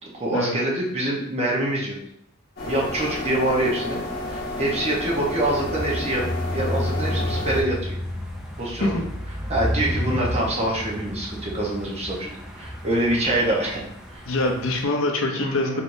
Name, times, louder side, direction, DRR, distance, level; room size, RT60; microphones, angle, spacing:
voice 1, 0.0-2.0 2.7-6.2 6.5-8.0 8.6-9.0 9.5-13.8 14.1-14.2 15.3-15.8, right 1 dB, 30° right, -3 dB, 0.9 m, -25 dB
sound 1, 2.6-7.6, left 2 dB, 45° left, 0.9 m, -31 dB
sound 2, 2.6-14.8, equal, 5° right, 0.5 m, -32 dB
voice 2, 14.3-15.8, left 2 dB, 65° left, 3 dB, 0.6 m, -24 dB
4.5 x 3.4 x 2.6 m, 0.74 s
head